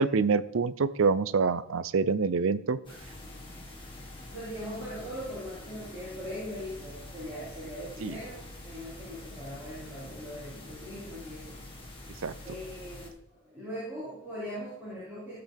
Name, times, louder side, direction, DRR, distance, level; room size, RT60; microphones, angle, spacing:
voice 1, 0.0-2.8 8.0-8.2 12.2-12.3, right 4 dB, 70° right, 15 dB, 0.5 m, -26 dB
sound 1, 2.8-13.1, left 1 dB, 25° left, 1.8 m, -46 dB
voice 2, 4.3-11.6 12.4-15.4, equal, 10° right, -11 dB, 5.1 m, -40 dB
17.0 x 7.7 x 3.5 m, 0.81 s
head